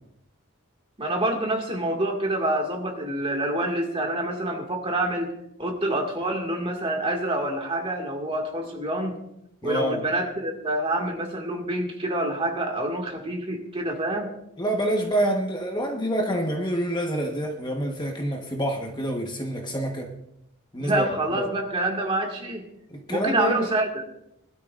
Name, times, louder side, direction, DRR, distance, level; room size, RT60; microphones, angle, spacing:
voice 1, 1.0-5.3 5.6-9.2 9.6-14.3 20.8-22.7 23.1-24.0, right 1 dB, 25° right, 1 dB, 2.0 m, -27 dB
voice 2, 9.6-10.0 14.6-20.1 20.7-21.0 21.4-21.5 22.9-23.5, right 1 dB, 20° left, 2 dB, 1.2 m, -27 dB
21.0 x 12.0 x 2.5 m, 0.80 s
head